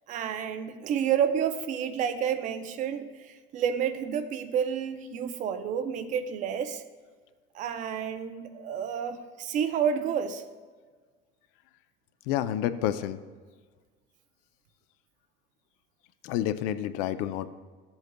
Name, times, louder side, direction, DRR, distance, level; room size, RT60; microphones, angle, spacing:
voice 1, 0.1-6.8 7.5-10.4, right 8 dB, 35° right, 9 dB, 0.5 m, -30 dB
voice 2, 12.2-13.2 16.2-17.5, left 11 dB, 90° left, 12 dB, 0.5 m, -29 dB
13.5 x 7.9 x 2.2 m, 1.5 s
cardioid pair, 175°, 21 cm